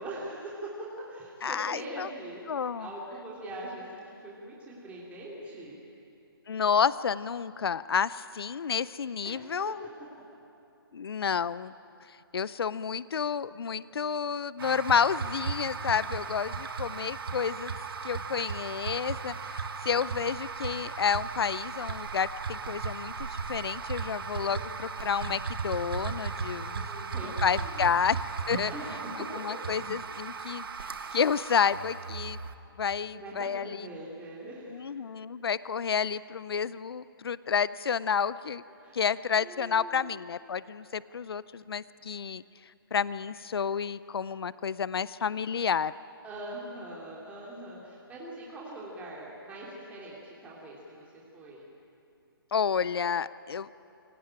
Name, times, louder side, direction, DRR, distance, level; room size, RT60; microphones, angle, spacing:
voice 1, 0.0-5.8 9.2-9.7 15.9-16.2 24.4-24.7 26.2-28.0 28.6-29.3 33.1-35.0 38.8-39.1 39.4-40.1 46.2-51.7, right 1 dB, 10° right, -5 dB, 3.2 m, -42 dB
voice 2, 1.4-2.1 2.5-2.9 6.5-9.8 10.9-11.7 12.3-17.7 18.0-26.8 27.2-28.2 28.5-28.7 29.2-30.7 31.1-32.4 32.8-33.8 34.7-38.6 38.9-42.4 42.9-45.9 52.5-53.7, left 6 dB, 75° left, 18 dB, 0.6 m, -30 dB
sound 1, 14.6-32.6, right 5 dB, 65° right, 1.6 m, -36 dB
24.0 x 18.0 x 8.9 m, 2.7 s
hypercardioid pair, 150°, 13 cm